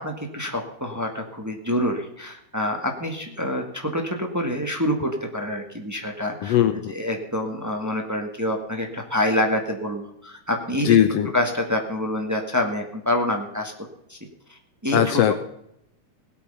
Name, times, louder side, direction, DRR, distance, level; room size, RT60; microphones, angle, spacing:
voice 1, 0.0-6.6 6.9-10.9 11.3-13.7 14.1-14.2 14.5-15.3, left 1 dB, 10° right, 2 dB, 1.0 m, -27 dB
voice 2, 6.4-6.9 10.8-11.3 14.9-15.3, left 10 dB, 75° left, 9 dB, 1.5 m, -19 dB
18.0 x 8.6 x 5.6 m, 0.78 s
omnidirectional pair, 3.5 m